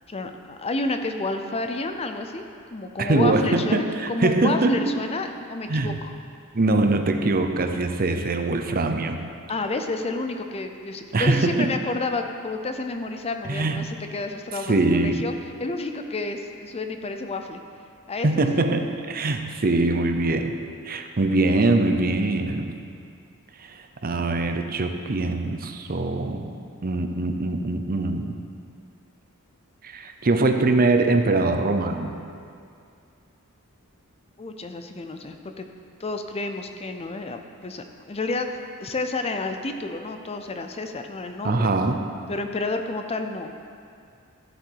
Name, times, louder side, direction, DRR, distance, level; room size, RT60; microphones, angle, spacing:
voice 1, 0.1-2.5 2.7-6.1 9.5-15.3 15.6-17.6 18.1-18.4 34.4-35.6 36.0-38.5 38.8-41.7 42.3-43.5, left 2 dB, 30° left, 6 dB, 0.6 m, -30 dB
voice 2, 3.0-4.8 5.7-5.9 6.5-9.2 11.1-11.7 13.5-13.8 14.7-15.2 18.2-20.6 20.9-22.7 23.6-26.5 26.8-28.2 29.8-32.1 41.4-42.0, right 2 dB, 40° right, 6 dB, 0.7 m, -23 dB
13.5 x 7.8 x 4.6 m, 2.3 s
head